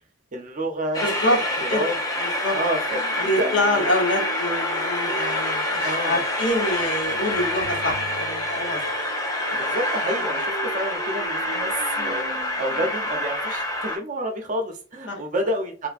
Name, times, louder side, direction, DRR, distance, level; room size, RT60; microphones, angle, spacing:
voice 1, 0.3-1.9 2.5-3.5 3.8-3.9 5.8-6.2 9.5-11.7 12.0-15.9, right 1 dB, 40° right, 3 dB, 0.7 m, -29 dB
Train, 0.9-14.0, left 1 dB, 20° left, 0.6 m, -27 dB
voice 2, 1.0-1.4 1.7-1.8 2.2-2.6 3.2-8.9 12.0-12.1 15.1-15.2, left 1 dB, 65° left, 0 dB, 1.1 m, -26 dB
sound 1, 2.9-12.9, right 2 dB, 80° right, 0.4 m, -40 dB
3.1 x 2.2 x 2.4 m, 0.38 s
head